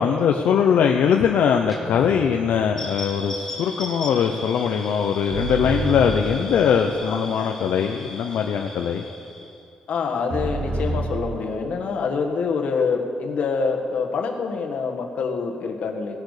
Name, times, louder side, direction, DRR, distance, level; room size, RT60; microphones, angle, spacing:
voice 1, 0.0-9.0, left 7 dB, 75° left, 3 dB, 0.7 m, -21 dB
Guitar, 1.7-3.7, right 1 dB, 5° right, 1.2 m, -41 dB
sound 1, 2.8-9.6, left 2 dB, 10° left, 1.6 m, -37 dB
sound 2, 5.3-7.0 10.3-11.2, right 2 dB, 45° right, 1.9 m, -28 dB
voice 2, 7.0-7.5 9.9-16.2, left 5 dB, 60° left, 2 dB, 1.5 m, -26 dB
17.5 x 10.5 x 4.9 m, 2.5 s
wide cardioid pair, 165°, 3 cm